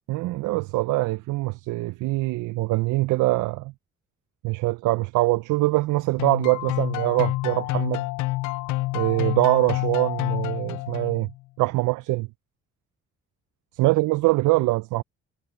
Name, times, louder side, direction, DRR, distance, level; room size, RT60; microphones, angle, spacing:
voice 1, 0.1-3.7 4.4-8.0 8.9-11.3 11.6-12.3 13.7-15.0, right 20 dB, 85° right, 0.5 m, -23 dB
sound 1, 6.2-11.4, left 20 dB, 80° left, 0.4 m, -28 dB
cardioid pair, 90°, 30 cm